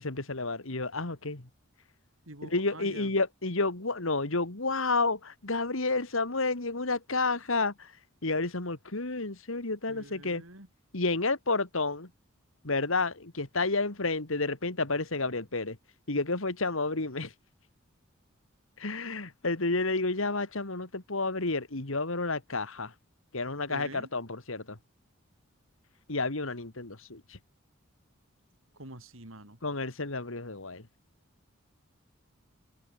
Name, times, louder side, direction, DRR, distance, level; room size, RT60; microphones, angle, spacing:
voice 1, 0.0-1.4 2.4-7.9 8.2-10.4 10.9-12.1 12.6-15.8 16.1-17.3 18.8-22.9 23.3-24.8 26.1-27.4 29.6-30.8, left 3 dB, 70° left, 2.2 m, -30 dB
voice 2, 2.3-3.1 9.9-10.7 23.7-24.1 28.7-29.6, right 2 dB, 70° right, 5.4 m, -46 dB
head